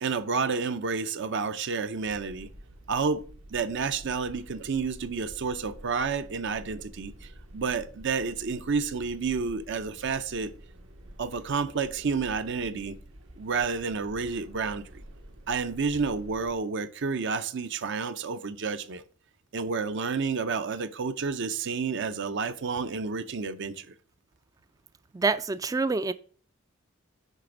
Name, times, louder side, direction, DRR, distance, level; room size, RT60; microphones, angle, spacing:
voice 1, 0.0-2.5 2.9-3.2 3.5-10.5 11.2-13.0 13.4-15.0 15.5-19.0 19.5-23.9, right 5 dB, 60° right, 0.6 m, -30 dB
sound 1, 2.0-16.6, right 1 dB, 80° right, 1.5 m, -48 dB
voice 2, 25.1-26.1, right 3 dB, 15° right, 0.3 m, -26 dB
10.0 x 3.4 x 7.1 m
head